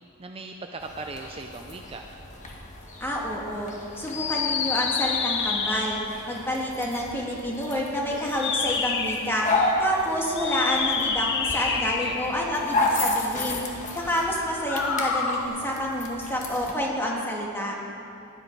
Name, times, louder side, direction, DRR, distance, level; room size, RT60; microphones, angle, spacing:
voice 1, 0.2-2.0 11.7-12.2, right 3 dB, 25° right, 3 dB, 0.5 m, -38 dB
sound 1, 0.8-16.7, left 2 dB, 35° left, 1.5 m, -32 dB
voice 2, 3.0-6.0 6.3-9.5 9.8-13.7 13.9-17.7, equal, 10° left, -2 dB, 1.8 m, -28 dB
sound 2, 4.1-6.2 8.2-9.3 10.3-12.5 14.5-15.5, left 5 dB, 55° left, 0.9 m, -28 dB
15.5 x 11.0 x 4.6 m, 2.7 s
head